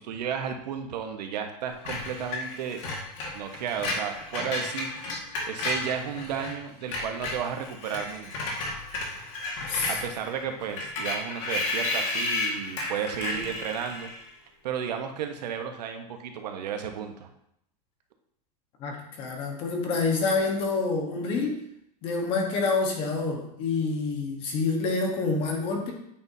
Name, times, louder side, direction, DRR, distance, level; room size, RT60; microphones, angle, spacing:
voice 1, 0.0-2.9 3.3-4.9 5.5-8.5 9.9-14.1 14.6-17.3, right 8 dB, 85° right, 5 dB, 1.0 m, -33 dB
Screech, 1.9-6.5 6.8-14.3, left 2 dB, 50° left, 1.8 m, -33 dB
voice 2, 18.8-21.6 22.0-25.9, left 4 dB, 25° left, 1 dB, 1.1 m, -27 dB
8.7 x 5.5 x 2.7 m, 0.75 s
supercardioid pair, 180°, 21 cm